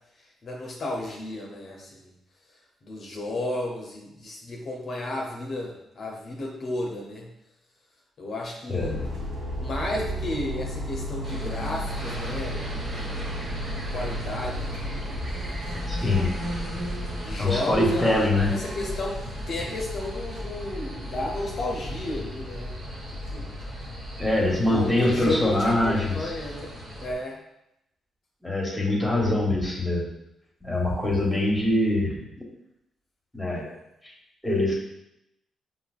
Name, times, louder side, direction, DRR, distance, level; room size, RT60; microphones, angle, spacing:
voice 1, 0.4-2.1 2.8-7.3 8.2-9.0 9.5-13.4 13.9-15.0 15.9-16.4 17.2-22.8 23.3-23.6 24.7-26.7 27.0-27.4, left 1 dB, 60° left, -2 dB, 0.6 m, -33 dB
voice 2, 8.7-9.1 15.9-16.4 17.4-18.6 24.2-26.3 28.4-30.1 30.6-32.2 33.3-33.7 34.0-34.1 34.4-34.7, left 1 dB, 10° left, -3 dB, 1.2 m, -24 dB
sound 1, 8.8-27.1, equal, 75° right, 0.8 m, -35 dB
sound 2, 11.2-27.1, right 1 dB, 45° right, 1.3 m, -39 dB
5.1 x 2.1 x 2.4 m, 0.84 s
supercardioid pair, 50°, 0 cm